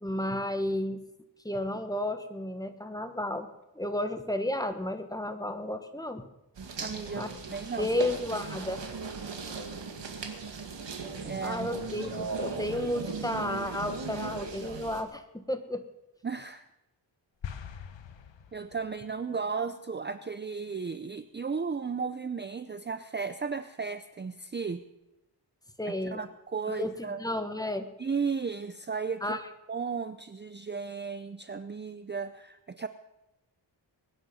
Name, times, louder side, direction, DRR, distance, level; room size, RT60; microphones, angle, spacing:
voice 1, 0.0-1.0 1.4-3.5 3.7-6.3 7.2-7.3 7.8-8.8 11.4-15.8 25.8-26.2 26.7-27.9 29.2-29.4, left 1 dB, 10° left, 8 dB, 1.2 m, -32 dB
sound 1, 6.6-15.0, right 4 dB, 70° right, 2.0 m, -38 dB
voice 2, 6.8-7.9 11.2-11.7 12.1-12.3 16.2-16.7 18.5-24.8 25.9-27.2 28.0-29.4 29.7-32.9, right 5 dB, 25° right, 11 dB, 0.5 m, -35 dB
sound 2, 17.4-19.1, left 8 dB, 80° left, 1.1 m, -42 dB
22.5 x 9.9 x 5.5 m, 0.94 s
wide cardioid pair, 105°, 44 cm